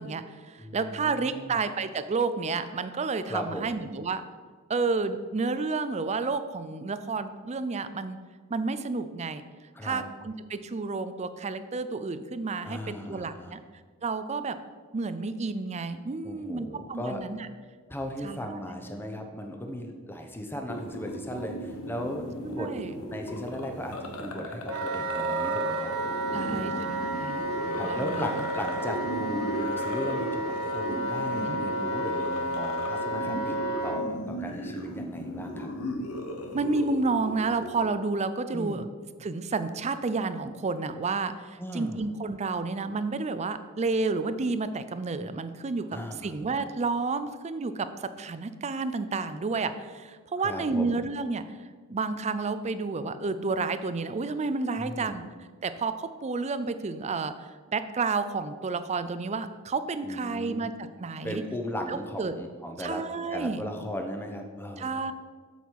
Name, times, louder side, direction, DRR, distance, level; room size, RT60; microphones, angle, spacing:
voice 1, 0.0-4.2 4.7-8.2 8.5-9.4 9.8-13.6 14.0-14.6 14.9-17.4 18.2-18.6 22.4-22.9 26.3-28.4 31.4-31.6 33.3-33.5 36.5-38.9 39.2-51.4 51.9-55.2 55.6-57.3 57.7-61.4 61.9-62.4 62.8-63.6 64.8-65.1, right 4 dB, 30° right, 12 dB, 0.4 m, -31 dB
voice 2, 0.6-1.6 3.3-3.8 9.7-10.0 12.6-13.6 16.2-17.2 17.9-22.7 23.1-26.9 27.7-35.7 38.5-38.8 41.6-42.0 45.9-46.4 50.4-51.1 54.7-55.2 60.0-60.7 61.2-63.0 63.3-64.9, equal, 10° left, 4 dB, 0.9 m, -37 dB
sound 1, 20.7-37.9, equal, 90° left, 1.1 m, -37 dB
Wind instrument woodwind instrument, 24.7-34.0, right 1 dB, 75° right, 1.3 m, -31 dB
8.1 x 7.2 x 4.7 m, 1.5 s
head